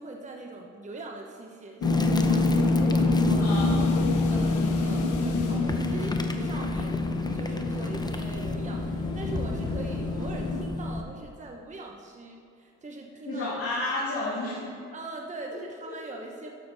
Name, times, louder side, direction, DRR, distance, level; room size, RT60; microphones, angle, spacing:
voice 1, 0.0-3.5 4.3-13.5 14.9-16.5, right 2 dB, 25° right, 1 dB, 0.9 m, -41 dB
sound 1, 1.8-10.7, left 4 dB, 85° left, 0.9 m, -30 dB
sound 2, 1.8-11.0, left 2 dB, 15° left, 0.7 m, -27 dB
voice 2, 3.4-3.9 13.3-14.7 15.9-16.0, left 2 dB, 50° left, -6 dB, 2.0 m, -31 dB
12.0 x 6.7 x 4.0 m, 2.4 s
cardioid pair, 90°, 30 cm